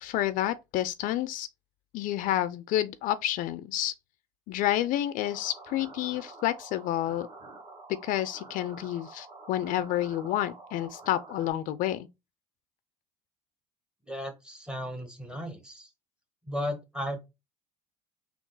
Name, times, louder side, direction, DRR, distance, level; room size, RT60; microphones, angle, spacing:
voice 1, 0.0-1.5 1.9-3.9 4.5-7.3 8.0-12.1, left 13 dB, 60° left, 0.4 m, -29 dB
sound 1, 5.2-11.5, right 3 dB, 35° right, 1.1 m, -48 dB
voice 2, 14.1-15.9 16.5-17.2, equal, 5° right, 1.0 m, -35 dB
3.7 x 2.3 x 3.8 m
supercardioid pair, 90°, 16 cm